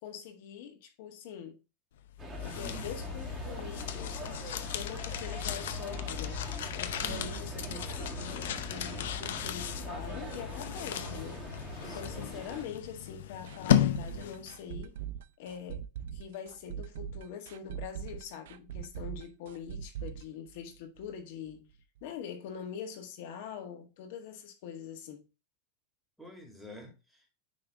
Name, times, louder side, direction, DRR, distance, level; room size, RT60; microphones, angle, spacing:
voice 1, 0.0-1.6 2.4-6.4 6.7-15.0 15.4-15.8 16.1-21.7 22.0-25.3, left 8 dB, 65° left, 1.8 m, -44 dB
sound 1, 2.1-14.6, left 11 dB, 80° left, 0.7 m, -35 dB
sound 2, 2.2-12.6, right 1 dB, 15° right, 2.3 m, -42 dB
voice 2, 2.6-3.2 7.0-7.5 11.6-12.0 26.2-27.3, right 1 dB, ahead, 2.2 m, -49 dB
sound 3, 13.5-21.2 21.5-21.6 22.0-22.1, right 9 dB, 75° right, 0.6 m, -41 dB
9.7 x 3.5 x 3.6 m
supercardioid pair, 135°, 0 cm